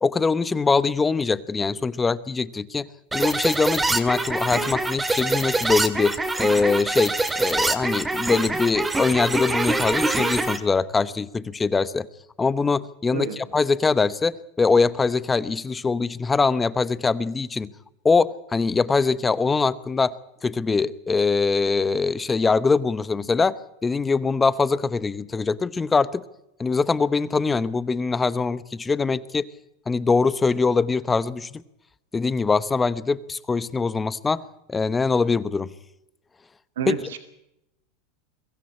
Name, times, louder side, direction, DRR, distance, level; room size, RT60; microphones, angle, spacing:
voice 1, 0.0-2.9 3.1-12.1 12.4-17.7 18.0-20.1 20.4-23.6 23.8-26.2 26.6-29.5 29.9-31.6 32.1-34.4 34.7-35.7 36.9-37.0, left 4 dB, 15° left, 17 dB, 0.9 m, -23 dB
sound 1, 3.1-10.6, right 2 dB, 10° right, 2.1 m, -24 dB
voice 2, 36.8-37.2, right 8 dB, 85° right, 7 dB, 2.2 m, -29 dB
23.0 x 14.5 x 8.6 m, 0.84 s
supercardioid pair, 120°, 0 cm